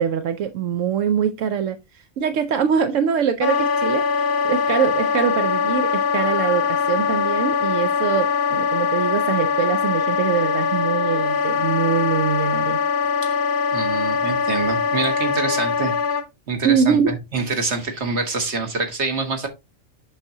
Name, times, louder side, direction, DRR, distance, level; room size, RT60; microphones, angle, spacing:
voice 1, 0.0-12.8 16.6-17.1, right 7 dB, 80° right, 1.0 m, -23 dB
Wind instrument woodwind instrument, 3.4-16.3, left 5 dB, 55° left, 0.7 m, -22 dB
voice 2, 13.7-15.9 16.5-19.5, right 3 dB, 60° right, 1.7 m, -26 dB
8.1 x 5.7 x 2.7 m
omnidirectional pair, 1.3 m